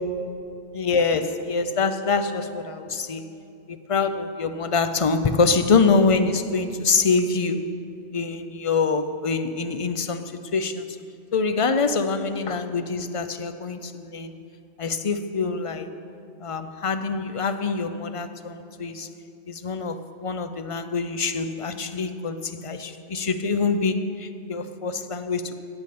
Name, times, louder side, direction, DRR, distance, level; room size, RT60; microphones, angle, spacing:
voice 1, 0.7-3.2 3.7-7.6 8.1-10.9 11.3-14.3 14.8-15.9 16.4-19.1 19.5-25.6, left 4 dB, 45° left, 10 dB, 0.4 m, -25 dB
10.5 x 8.9 x 8.4 m, 2.7 s
omnidirectional pair, 1.2 m